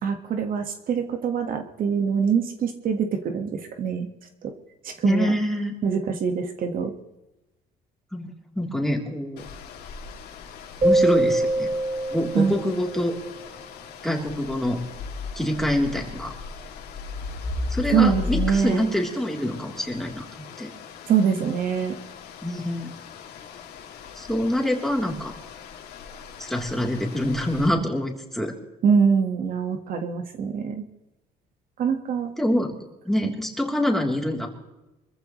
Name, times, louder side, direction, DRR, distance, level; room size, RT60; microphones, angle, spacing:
voice 1, 0.0-4.1 4.4-4.5 4.8-5.4 5.8-6.9 12.3-12.5 17.9-18.9 21.1-22.0 28.8-30.8 31.8-32.3 33.2-33.3, right 6 dB, 55° right, 6 dB, 1.5 m, -24 dB
voice 2, 5.0-5.7 8.1-9.4 10.8-11.7 12.1-13.1 14.0-14.8 15.3-16.3 17.7-20.2 20.6-20.7 22.4-22.9 24.1-25.4 26.4-28.5 32.4-32.7 33.0-34.5, left 1 dB, ahead, 0 dB, 3.2 m, -25 dB
sound 1, 9.4-27.7, left 5 dB, 75° left, 2.5 m, -37 dB
sound 2, 10.8-13.1, right 2 dB, 40° right, 7.1 m, -23 dB
25.0 x 14.5 x 3.1 m, 1.0 s
cardioid pair, 110°, 17 cm